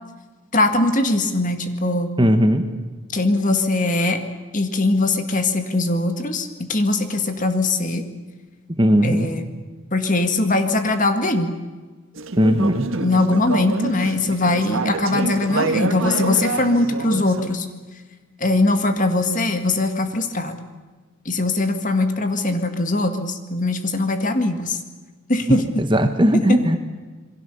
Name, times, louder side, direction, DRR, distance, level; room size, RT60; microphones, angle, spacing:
voice 1, 0.5-2.2 3.1-4.2 4.5-8.0 9.0-9.4 9.9-11.5 13.0-17.7 18.4-20.6 21.3-24.8 25.3-25.8 26.3-26.6, left 2 dB, 35° left, 7 dB, 1.9 m, -21 dB
voice 2, 2.2-2.6 8.8-9.3 12.4-12.9 25.8-26.8, equal, 20° right, 7 dB, 1.4 m, -17 dB
Conversation / Chatter, 12.2-17.5, right 3 dB, 65° right, 1.4 m, -27 dB
28.0 x 22.5 x 7.0 m, 1.3 s
head